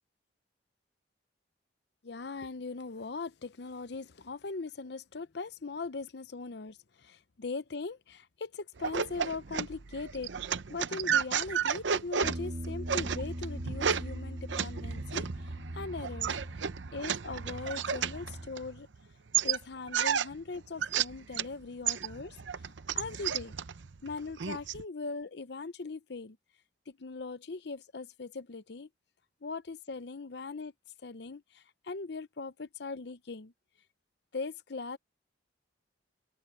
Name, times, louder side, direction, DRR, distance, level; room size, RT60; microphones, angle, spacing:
voice 1, 2.0-15.3 15.7-16.4 16.9-18.9 19.4-22.4 22.9-23.5 24.0-26.4 26.9-28.9 29.4-30.7 31.0-33.5 34.3-35.0, left 4 dB, 60° left, 0.7 m, -40 dB
sound 1, 8.8-19.0 19.3-21.5 21.9-24.8, right 7 dB, 75° right, 0.7 m, -33 dB
Bass guitar, 12.2-18.5, equal, 45° right, 2.5 m, -41 dB
head